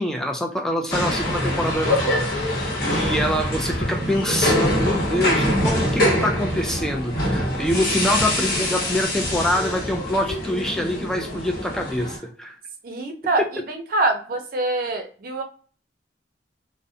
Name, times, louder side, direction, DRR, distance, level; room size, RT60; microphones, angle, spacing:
voice 1, 0.0-12.6, left 1 dB, 5° left, 2 dB, 0.3 m, -25 dB
sound 1, 0.9-12.2, left 1 dB, 55° left, 0.9 m, -24 dB
voice 2, 12.8-15.4, right 2 dB, 55° right, 4 dB, 0.5 m, -25 dB
2.5 x 2.0 x 2.5 m, 0.42 s
head